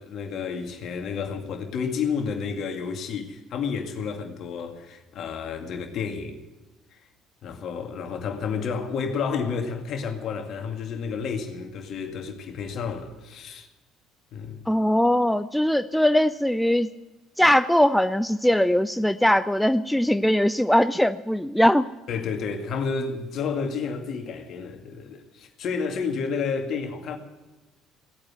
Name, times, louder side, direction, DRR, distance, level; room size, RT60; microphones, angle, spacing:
voice 1, 0.0-6.4 7.4-13.7 14.3-14.7 22.1-27.2, left 5 dB, 50° left, 2.2 m, -30 dB
voice 2, 14.7-16.9 17.4-21.9, left 1 dB, 5° left, 0.5 m, -21 dB
17.5 x 8.8 x 7.9 m
figure-of-eight pair, 55°, 0 cm